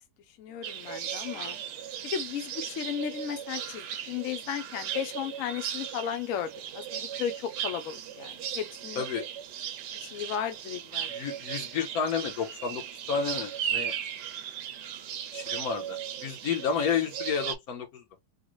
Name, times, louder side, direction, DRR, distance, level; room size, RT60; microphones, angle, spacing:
voice 1, 0.4-1.6 2.0-9.0 9.9-11.1, left 9 dB, 75° left, 0.7 m, -35 dB
sound 1, 0.6-17.5, right 9 dB, 75° right, 1.1 m, -37 dB
voice 2, 11.1-12.8 13.1-13.9 15.3-18.0, left 6 dB, 60° left, 1.2 m, -31 dB
3.9 x 2.1 x 2.9 m
omnidirectional pair, 2.0 m